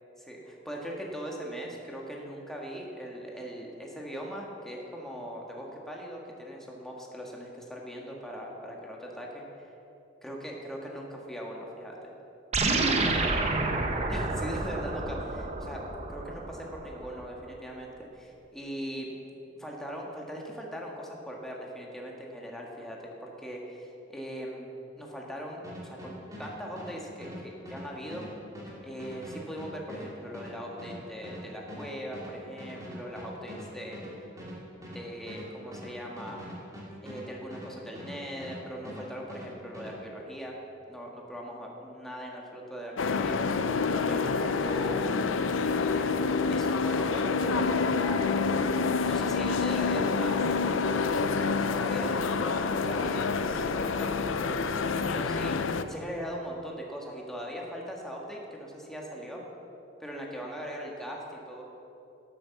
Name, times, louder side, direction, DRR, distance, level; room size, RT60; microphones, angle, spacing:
voice 1, 0.3-9.7 10.2-12.0 12.8-13.4 14.1-15.8 16.1-19.1 19.6-24.7 25.0-28.3 28.8-34.3 34.9-36.4 37.0-40.5 40.9-43.4 43.9-45.1 45.6-46.2 46.5-50.4 50.8-59.4 60.0-61.6, equal, ahead, -2 dB, 1.7 m, -40 dB
sound 1, 12.5-17.2, right 2 dB, 35° right, 1.0 m, -29 dB
sound 2, 25.6-38.6 38.8-39.9, equal, 15° right, 2.6 m, -43 dB
sound 3, 43.0-55.8, left 4 dB, 90° left, 0.6 m, -27 dB
11.5 x 8.8 x 7.1 m, 2.9 s
head